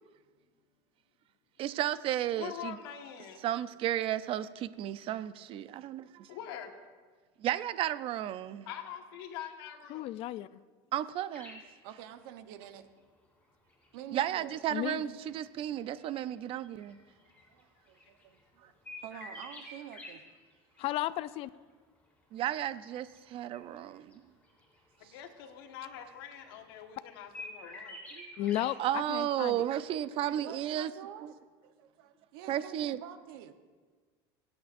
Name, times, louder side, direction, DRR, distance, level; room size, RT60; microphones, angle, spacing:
voice 1, 1.6-2.8 3.4-6.3 7.4-8.7 10.9-11.6 14.1-17.0 22.3-24.2 28.1-28.2 28.8-30.9 31.2-31.3 32.5-33.0, right 12 dB, 50° right, 0.5 m, -33 dB
voice 2, 2.3-3.4 6.3-6.7 8.6-10.2 25.0-28.2, left 10 dB, 85° left, 1.4 m, -44 dB
voice 3, 9.9-10.6 14.7-15.0 20.8-21.5 28.4-29.7, left 14 dB, 50° left, 0.4 m, -34 dB
sound 1, 11.3-11.7 12.7-12.8 13.7-18.4 18.9-20.1 20.4-20.9 21.1-21.5 22.4-24.1 24.4-25.0 25.3-25.4 25.6-26.7 27.0-28.7 29.1-29.2 29.5-30.0 30.2-30.3, left 2 dB, 15° left, 3.6 m, -49 dB
voice 4, 11.8-12.9 13.9-14.5 15.0-15.5 17.5-20.2 25.0-25.1 28.4-28.8 30.4-31.3 31.6-33.5, right 10 dB, 80° right, 1.0 m, -48 dB
26.0 x 8.7 x 2.6 m
supercardioid pair, 115°, 12 cm